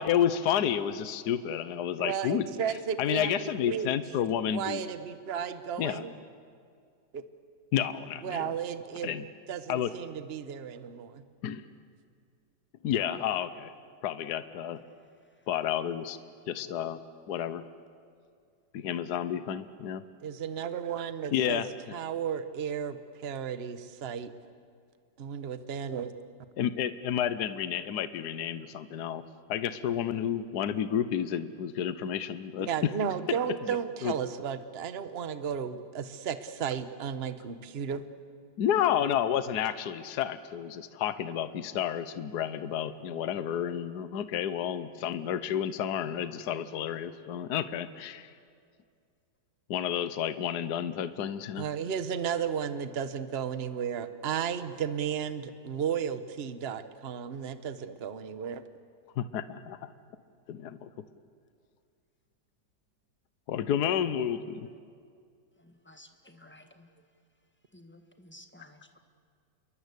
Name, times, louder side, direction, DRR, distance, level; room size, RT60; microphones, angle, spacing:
voice 1, 0.0-2.5 3.0-4.8 5.8-6.0 7.7-8.5 9.0-9.3 9.7-9.9 11.4-11.6 12.8-13.7 14.0-14.8 15.5-16.2 16.5-17.0 17.3-17.6 18.7-20.0 21.3-22.0 26.6-29.2 29.5-32.9 33.6-33.8 34.0-34.1 38.6-48.3 49.7-51.7 59.2-59.9 60.5-60.9 63.5-64.7, left 9 dB, 65° left, 13 dB, 1.4 m, -30 dB
voice 2, 2.0-3.9 4.5-6.1 7.1-7.2 8.2-9.1 9.5-11.2 20.2-21.6 21.9-24.3 25.2-26.1 32.6-38.0 51.6-58.6, right 7 dB, 40° right, 11 dB, 1.1 m, -34 dB
voice 3, 65.9-66.6 67.7-68.0 68.2-69.0, left 1 dB, 5° left, 6 dB, 1.5 m, -53 dB
28.0 x 23.0 x 8.3 m, 2.2 s
omnidirectional pair, 2.0 m